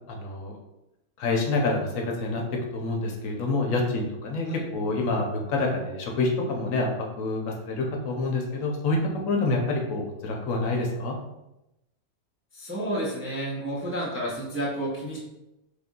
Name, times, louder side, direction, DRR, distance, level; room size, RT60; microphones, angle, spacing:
voice 1, 0.1-0.5 1.2-2.4 2.7-6.9 7.2-9.0 9.3-11.1, left 3 dB, 70° left, 1 dB, 1.0 m, -27 dB
voice 2, 12.5-15.2, right 1 dB, 15° right, -6 dB, 0.5 m, -30 dB
3.4 x 2.5 x 3.6 m, 0.92 s
omnidirectional pair, 1.5 m